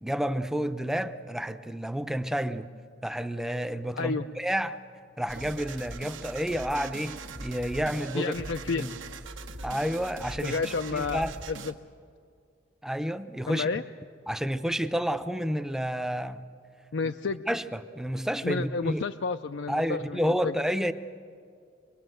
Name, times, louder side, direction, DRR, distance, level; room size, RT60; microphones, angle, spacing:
voice 1, 0.0-2.7 3.0-4.8 5.2-8.3 8.7-8.9 9.6-11.3 12.8-13.7 14.3-16.4 17.0-17.1 17.5-19.0 19.7-20.9, equal, 5° right, 10 dB, 0.6 m, -30 dB
voice 2, 3.9-4.3 8.1-8.9 10.4-11.7 13.5-13.8 16.9-17.4 18.4-20.6, left 4 dB, 70° left, 8 dB, 0.5 m, -31 dB
sound 1, 5.3-11.7, right 3 dB, 85° right, 1.3 m, -41 dB
25.0 x 20.5 x 7.9 m, 2.3 s
head